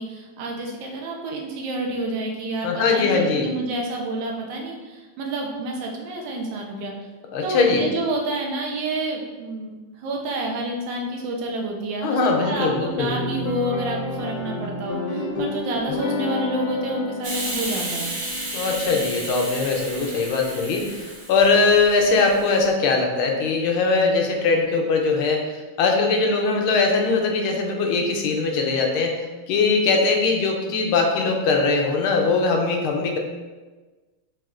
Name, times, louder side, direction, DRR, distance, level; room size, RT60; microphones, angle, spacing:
voice 1, 0.0-6.9 7.4-9.7 10.0-18.1, right 2 dB, 70° right, 0 dB, 1.4 m, -29 dB
voice 2, 2.6-3.5 7.3-7.9 12.0-13.1 18.5-33.2, left 4 dB, 80° left, 2 dB, 1.5 m, -21 dB
sound 1, 12.3-20.8, left 2 dB, 65° left, 1.0 m, -31 dB
Hiss, 17.2-22.6, right 2 dB, 55° right, 0.6 m, -33 dB
7.3 x 2.8 x 2.4 m, 1.3 s
omnidirectional pair, 2.3 m